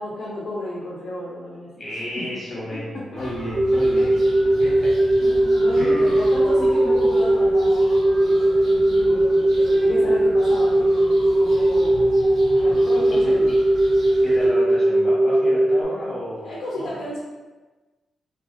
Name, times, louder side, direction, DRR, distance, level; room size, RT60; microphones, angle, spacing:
voice 1, 0.0-2.3 2.7-3.3 3.7-4.1 4.6-4.9 5.2-12.2 12.6-13.5 14.0-14.1 16.4-17.2, left 1 dB, 75° left, -6 dB, 0.6 m, -33 dB
voice 2, 1.8-4.2 4.6-4.9 5.8-6.3 13.2-13.4 14.2-16.5 16.8-17.0, left 1 dB, 40° left, -7 dB, 1.2 m, -32 dB
sound 1, 3.1-14.5, right 1 dB, 80° right, 0.9 m, -38 dB
sound 2, 3.5-15.8, right 1 dB, 35° right, 0.4 m, -18 dB
2.5 x 2.3 x 2.4 m, 1.2 s
cardioid pair, 80°, 0 cm